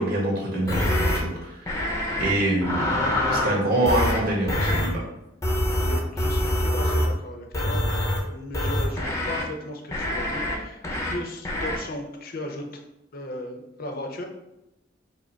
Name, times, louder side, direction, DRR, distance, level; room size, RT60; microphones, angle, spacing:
voice 1, 0.0-1.9 2.2-5.0, right 1 dB, 55° right, -3 dB, 1.6 m, -25 dB
sound 1, 0.7-1.2 1.7-2.3 2.6-3.5 3.9-4.2 4.5-4.9 5.4-7.1 7.5-8.2 8.5-9.4 9.9-10.6 10.8-11.1 11.5-11.8, left 1 dB, 15° left, 0.8 m, -25 dB
voice 2, 5.8-7.8 8.3-12.8 13.1-14.2, left 1 dB, 55° left, 3 dB, 0.7 m, -36 dB
4.8 x 2.1 x 4.5 m, 0.89 s
head